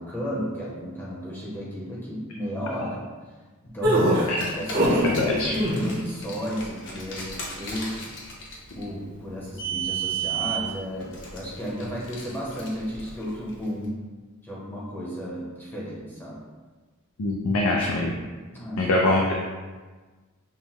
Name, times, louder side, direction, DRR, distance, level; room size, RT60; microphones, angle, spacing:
voice 1, 0.0-3.0 3.6-4.1 4.6-8.0 8.7-14.0 14.4-16.4 18.5-18.9, equal, 10° left, -6 dB, 0.7 m, -33 dB
sound 1, 3.8-5.1 5.5-6.0, right 1 dB, 50° right, 0.9 m, -22 dB
Car, 4.2-13.7, right 6 dB, 55° left, 0.7 m, -35 dB
voice 2, 5.1-5.5 17.2-18.1 18.8-19.3, left 2 dB, 85° left, -2 dB, 0.5 m, -23 dB
5.6 x 2.1 x 3.0 m, 1.3 s
head